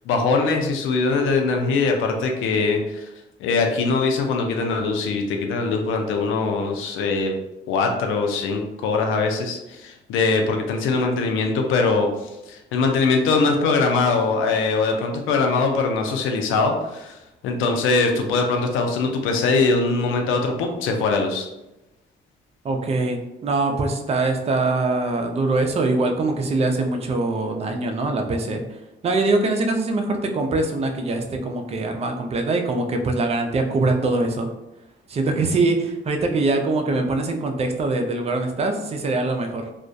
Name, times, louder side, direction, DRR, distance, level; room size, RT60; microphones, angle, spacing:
voice 1, 0.1-3.1 3.4-7.4 7.7-17.2 17.4-21.5, left 4 dB, 85° left, 3 dB, 0.4 m, -22 dB
voice 2, 22.6-28.6 29.0-34.5 35.1-39.7, right 2 dB, 30° right, 4 dB, 0.4 m, -23 dB
2.3 x 2.1 x 2.6 m, 0.94 s
cardioid pair, 90°, 20 cm